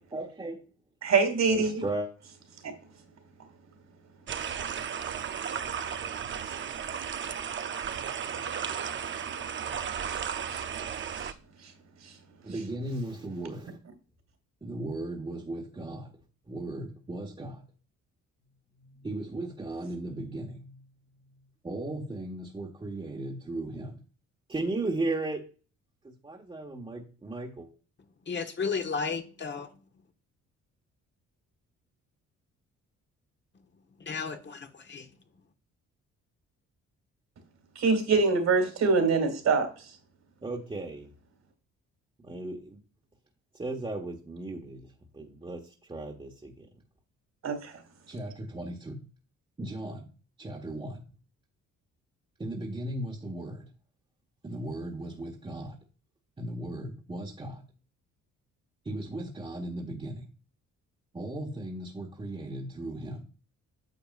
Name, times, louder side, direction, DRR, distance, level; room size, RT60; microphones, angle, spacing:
voice 1, 0.1-0.6 1.5-2.1 12.4-13.8 14.6-16.1 16.5-17.6 18.9-20.8 21.6-24.0 24.5-25.4 26.0-27.7 40.4-41.1 42.2-42.8 43.6-44.9 45.1-45.6 45.9-46.5 48.1-49.0 49.6-50.1 50.4-51.0 52.4-53.6 54.4-55.8 56.4-57.6 58.8-60.3 61.1-63.2, right 2 dB, 20° right, 1.4 m, -36 dB
voice 2, 1.0-1.8 2.6-2.7 10.1-10.6 11.1-11.3 11.6-11.7 12.0-12.2 12.5-12.6 37.8-40.0 47.4-47.8, right 4 dB, 60° right, 2.4 m, -26 dB
sound 1, 4.3-11.3, right 7 dB, 40° right, 0.6 m, -34 dB
voice 3, 28.3-29.8 34.0-35.1, left 5 dB, 40° left, 1.3 m, -33 dB
9.4 x 6.7 x 2.5 m
cardioid pair, 90°, 30 cm